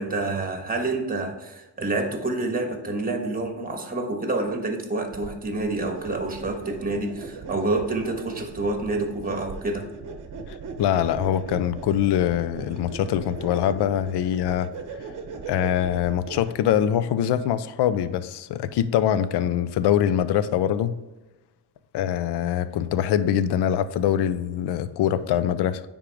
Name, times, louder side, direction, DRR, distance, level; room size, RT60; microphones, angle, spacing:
voice 1, 0.0-9.9, right 2 dB, 20° right, 1.3 m, -28 dB
sound 1, 5.1-16.8, right 4 dB, 45° right, 0.8 m, -39 dB
voice 2, 10.5-14.7 15.5-21.0 21.9-25.8, left 10 dB, 65° left, 0.5 m, -23 dB
9.6 x 3.6 x 3.4 m
cardioid pair, 110°, 44 cm